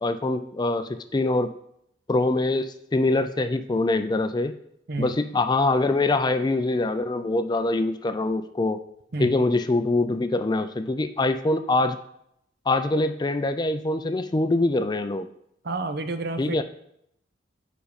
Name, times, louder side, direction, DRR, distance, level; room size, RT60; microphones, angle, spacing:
voice 1, 0.0-1.5 2.1-4.5 5.0-8.8 9.2-12.0 12.7-15.3 16.4-16.6, left 2 dB, 20° left, 10 dB, 0.4 m, -24 dB
voice 2, 15.6-16.6, right 3 dB, 55° right, 9 dB, 0.6 m, -29 dB
7.1 x 5.2 x 5.1 m, 0.74 s
head